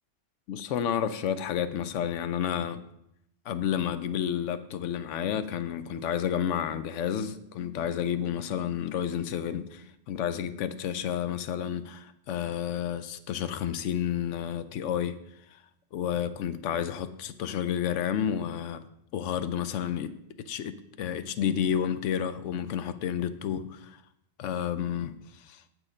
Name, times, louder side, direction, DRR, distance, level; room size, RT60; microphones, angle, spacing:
voice 1, 0.5-2.8 3.5-15.2 15.9-18.8 19.1-24.0 24.4-25.6, left 9 dB, 90° left, 12 dB, 0.9 m, -31 dB
7.6 x 6.4 x 5.0 m, 0.80 s
omnidirectional pair, 1.2 m